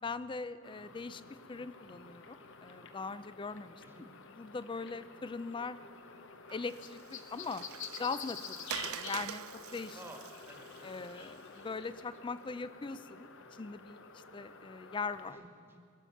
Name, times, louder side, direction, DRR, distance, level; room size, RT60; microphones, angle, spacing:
voice 1, 0.0-1.2 1.5-5.8 6.5-7.6 8.0-9.4 9.7-10.0 10.8-15.4, left 4 dB, 25° left, 14 dB, 0.4 m, -41 dB
sound 1, 0.6-15.3, left 6 dB, 60° left, 0.8 m, -49 dB
Water, 6.5-11.9, right 12 dB, 80° right, 0.4 m, -46 dB
voice 2, 9.9-11.3 15.2-15.8, right 1 dB, 10° right, 3 dB, 1.4 m, -53 dB
21.0 x 7.2 x 7.1 m, 2.2 s
head